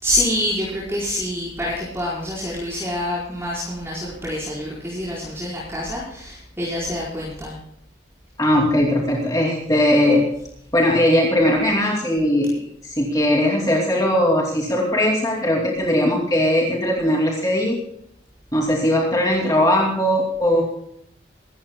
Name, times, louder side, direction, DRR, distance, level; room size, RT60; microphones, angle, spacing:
voice 1, 0.0-7.5, left 1 dB, 15° right, -7 dB, 4.6 m, -26 dB
voice 2, 8.4-10.2 10.7-17.8 18.5-20.6, left 1 dB, 20° left, -2 dB, 2.6 m, -19 dB
25.0 x 13.0 x 2.3 m, 0.73 s
head